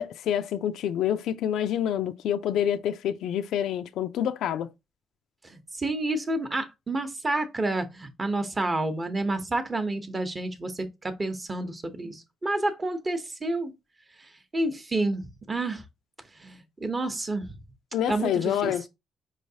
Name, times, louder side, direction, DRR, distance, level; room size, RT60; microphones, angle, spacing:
voice 1, 0.0-4.7 17.9-18.8, left 10 dB, 80° left, 0.3 m, -27 dB
voice 2, 5.4-13.7 14.2-15.8 16.4-17.5 18.1-18.7, right 2 dB, 30° right, 0.8 m, -29 dB
4.6 x 3.2 x 2.7 m
cardioid pair, 90°, 0 cm